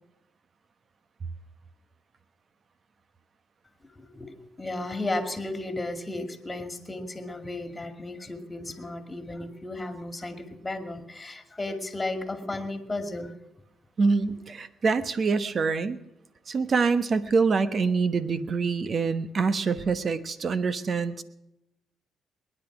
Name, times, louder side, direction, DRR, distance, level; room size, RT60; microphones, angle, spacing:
voice 1, 3.8-13.3, left 2 dB, 20° left, 7 dB, 2.4 m, -34 dB
voice 2, 14.0-16.0 16.5-21.2, right 4 dB, 45° right, 12 dB, 1.2 m, -25 dB
20.5 x 11.0 x 6.1 m, 0.87 s
cardioid pair, 90°, 0 cm